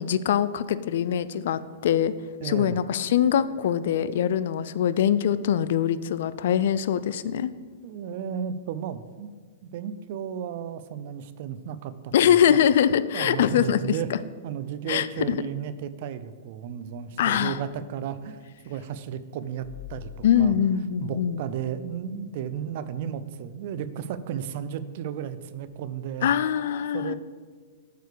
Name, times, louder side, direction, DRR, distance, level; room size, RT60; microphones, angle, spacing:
voice 1, 0.0-2.1 2.4-7.5 12.1-14.2 14.9-15.4 17.2-17.6 20.2-21.4 26.2-27.1, left 9 dB, 65° left, 15 dB, 0.3 m, -23 dB
voice 2, 2.4-2.8 7.8-9.3 9.6-12.6 13.1-14.1 14.4-18.4 18.6-20.5 21.0-26.3 26.9-27.1, right 9 dB, 55° right, 13 dB, 0.4 m, -34 dB
sound 1, 19.5-22.1 22.6-22.7 25.7-25.8, left 10 dB, 10° right, 1.1 m, -46 dB
6.7 x 4.5 x 6.6 m, 1.5 s
hypercardioid pair, 130°, 0 cm